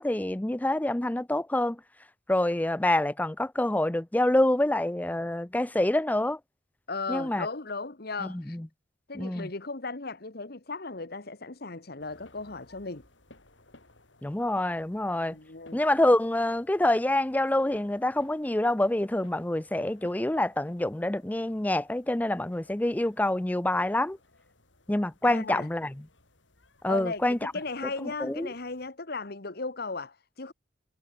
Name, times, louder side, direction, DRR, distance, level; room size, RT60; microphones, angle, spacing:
voice 1, 0.0-1.8 2.3-6.4 7.1-7.5 8.2-8.7 9.1-9.5 14.2-15.4 15.7-24.2 24.9-25.9 26.8-27.5 28.2-28.5, left 1 dB, 10° left, 0.5 m, -26 dB
voice 2, 6.9-8.6 9.1-13.1 15.3-15.8 25.2-25.7 26.9-30.5, left 3 dB, 55° left, 1.6 m, -36 dB
sound 1, 12.0-28.9, left 2 dB, 75° left, 5.7 m, -60 dB
head